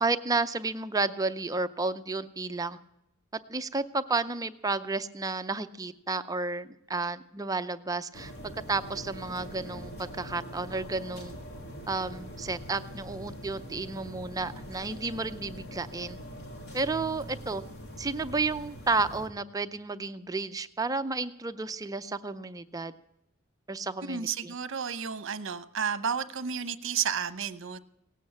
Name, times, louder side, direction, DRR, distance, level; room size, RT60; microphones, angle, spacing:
voice 1, 0.0-2.8 3.5-8.3 8.7-11.3 11.9-16.2 16.7-17.6 18.0-22.9 23.7-24.5, right 3 dB, 15° right, 10 dB, 0.5 m, -32 dB
sound 1, 8.1-19.3, equal, 55° left, 2.3 m, -43 dB
voice 2, 24.0-27.8, right 7 dB, 65° right, 12 dB, 0.9 m, -32 dB
18.0 x 8.4 x 8.6 m, 0.83 s
head